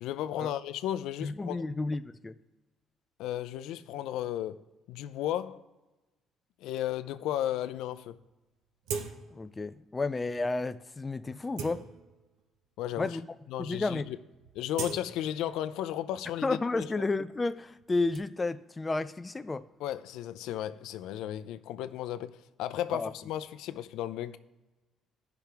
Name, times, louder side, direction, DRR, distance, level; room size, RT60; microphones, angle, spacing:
voice 1, 0.0-1.6 3.2-4.6 4.9-5.6 6.6-8.2 12.8-13.2 13.5-14.2 14.5-16.6 19.8-24.4, left 12 dB, 85° left, 0.4 m, -34 dB
voice 2, 1.2-2.3 9.3-11.8 13.0-13.3 13.6-14.1 16.4-19.7 22.9-23.1, left 3 dB, 20° left, 0.4 m, -32 dB
sound 1, 8.1-8.2 8.8-9.5 9.9-10.1 10.7-10.9 11.3-12.4 13.1-13.2 13.5-13.8 14.1-15.9 16.2-18.2, right 6 dB, 85° right, 1.0 m, -41 dB
16.5 x 5.9 x 3.4 m
cardioid pair, 125°, 0 cm